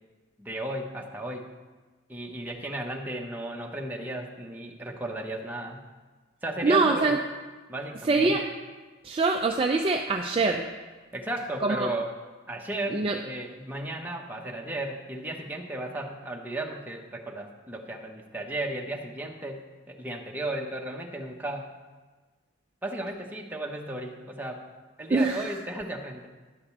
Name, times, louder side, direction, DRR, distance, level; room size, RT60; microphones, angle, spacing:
voice 1, 0.4-1.5 2.1-5.8 6.4-7.1 7.7-8.2 11.1-12.1 12.5-21.7 22.8-24.6 25.0-26.3, right 1 dB, 10° right, 0 dB, 0.9 m, -35 dB
voice 2, 6.6-7.2 8.0-8.5 9.0-10.7 11.6-11.9 12.9-13.2 25.1-25.5, right 3 dB, 25° right, 3 dB, 0.4 m, -24 dB
11.0 x 5.0 x 7.2 m, 1.3 s
head